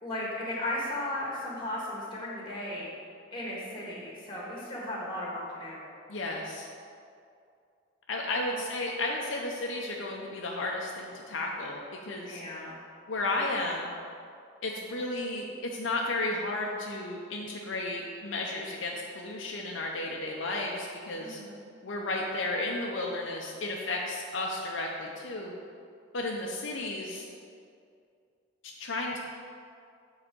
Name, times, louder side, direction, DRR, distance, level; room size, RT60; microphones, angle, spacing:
voice 1, 0.0-2.9 3.3-5.9 12.2-12.8 21.2-21.6, left 1 dB, 25° left, -5 dB, 1.8 m, -36 dB
voice 2, 6.1-6.7 8.1-12.4 13.1-13.9 14.6-21.4 21.8-25.5 26.1-27.3 28.6-29.2, left 2 dB, 70° left, -1 dB, 0.7 m, -33 dB
7.8 x 4.0 x 6.1 m, 2.4 s
head